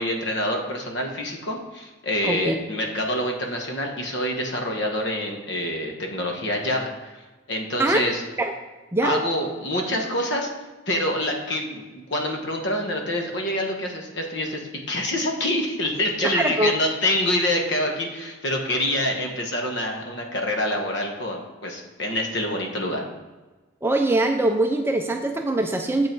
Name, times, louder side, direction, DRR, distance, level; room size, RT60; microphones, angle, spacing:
voice 1, 0.0-7.2 7.5-8.2 9.0-10.5 10.9-23.0, left 1 dB, 55° left, 2 dB, 1.2 m, -26 dB
voice 2, 2.2-2.6 7.8-8.0 8.4-8.5 8.9-9.2 16.2-16.7 23.8-26.1, right 2 dB, 10° right, 4 dB, 0.4 m, -22 dB
7.6 x 5.7 x 4.5 m, 1.2 s
head